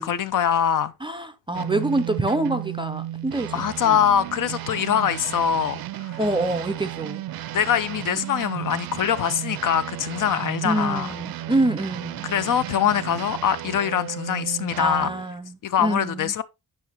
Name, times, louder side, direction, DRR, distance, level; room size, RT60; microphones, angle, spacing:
voice 1, 0.0-0.9 3.5-6.2 7.5-11.1 12.2-15.1 15.6-16.4, left 9 dB, 55° left, 0.6 m, -23 dB
voice 2, 1.0-4.0 6.2-7.2 10.6-12.2 14.8-16.3, right 2 dB, 15° right, 0.4 m, -26 dB
sound 1, 1.5-15.3, right 13 dB, 70° right, 0.5 m, -34 dB
9.0 x 5.8 x 2.9 m
wide cardioid pair, 175°, 37 cm